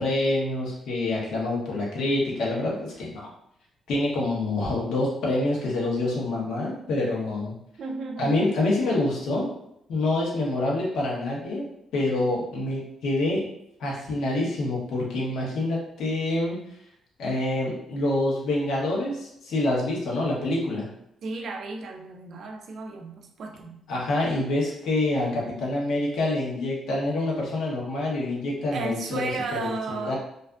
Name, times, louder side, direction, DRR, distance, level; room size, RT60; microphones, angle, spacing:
voice 1, 0.0-3.3 3.9-7.5 8.2-9.5 9.9-11.6 11.9-13.4 13.8-16.6 17.2-20.9 23.9-29.3 29.6-30.2, left 2 dB, 75° left, -4 dB, 0.8 m, -26 dB
voice 2, 7.8-8.5 21.2-23.8 28.7-30.2, right 3 dB, 65° right, 4 dB, 0.4 m, -34 dB
2.5 x 2.4 x 2.3 m, 0.77 s
cardioid pair, 90°, 0 cm